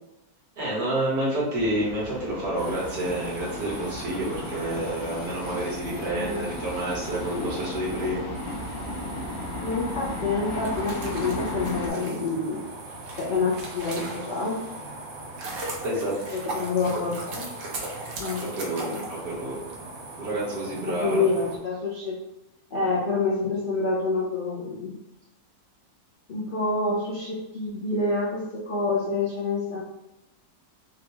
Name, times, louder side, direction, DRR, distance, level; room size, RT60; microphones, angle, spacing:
voice 1, 0.6-8.2 15.8-16.4 18.6-19.5 20.2-21.2, right 1 dB, 40° right, -6 dB, 1.4 m, -29 dB
sound 1, 1.5-11.9, left 1 dB, 65° left, 1.0 m, -35 dB
sound 2, 2.6-21.6, right 2 dB, 85° right, 1.5 m, -41 dB
voice 2, 6.2-6.6 9.6-12.6 13.1-14.6 16.3-17.5 18.2-19.1 20.8-22.2 22.7-24.9 26.3-29.8, left 3 dB, 85° left, -7 dB, 0.4 m, -27 dB
sound 3, 10.5-14.6 15.0-19.7, right 2 dB, 65° right, 0.6 m, -38 dB
3.7 x 2.3 x 3.0 m, 0.91 s
omnidirectional pair, 1.9 m